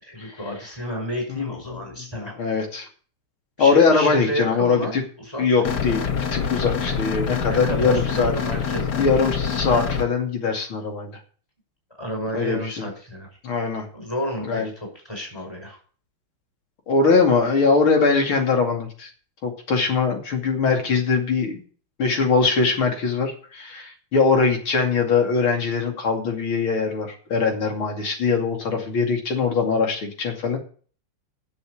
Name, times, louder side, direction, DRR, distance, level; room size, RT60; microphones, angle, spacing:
voice 1, 0.0-2.4 3.6-5.0 5.3-5.6 7.4-9.1 12.0-13.3 13.9-15.8, equal, 10° left, 0 dB, 5.5 m, -31 dB
voice 2, 2.4-2.9 3.6-5.0 5.4-8.3 9.0-11.1 12.3-12.8 13.4-13.9 14.5-14.7 16.9-19.1 19.4-21.6 22.0-30.6, left 4 dB, 70° left, 4 dB, 3.4 m, -21 dB
sound 1, 5.6-10.0, left 6 dB, 50° left, 1.8 m, -25 dB
11.5 x 7.1 x 8.4 m, 0.42 s
omnidirectional pair, 2.4 m